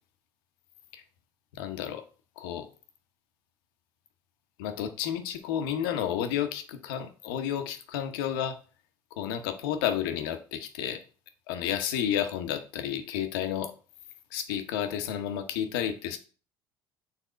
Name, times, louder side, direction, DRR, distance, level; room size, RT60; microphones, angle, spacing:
voice 1, 1.5-2.0 2.4-2.7 4.6-8.6 9.2-11.0 11.5-13.7 14.3-16.2, left 9 dB, 80° left, 8 dB, 0.9 m, -31 dB
6.9 x 3.5 x 5.0 m, 0.38 s
hypercardioid pair, 75°, 12 cm